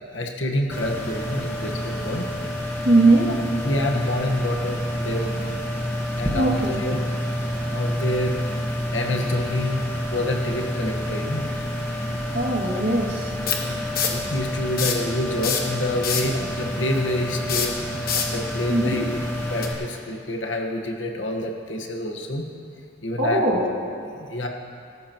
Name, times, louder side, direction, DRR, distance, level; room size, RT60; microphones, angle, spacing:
voice 1, 0.1-2.3 3.3-3.4 3.6-5.6 6.1-7.0 7.7-8.4 8.9-9.8 10.1-11.5 13.5-17.8 18.2-19.2 19.5-22.5 23.0-23.4 24.1-24.5, left 1 dB, 75° left, 1 dB, 1.4 m, -27 dB
sound 1, 0.7-19.7, equal, 15° left, 1.4 m, -29 dB
voice 2, 2.8-3.3 6.3-6.8 12.3-13.3 16.3-16.4 18.7-19.0 23.2-23.7, right 2 dB, 60° right, -4 dB, 2.3 m, -20 dB
sound 2, 12.0-12.1 13.5-14.3 14.7-15.1 15.4-16.4 17.4-18.4 19.6-19.7, left 7 dB, 50° left, 1.3 m, -25 dB
18.0 x 14.0 x 3.0 m, 2.4 s
head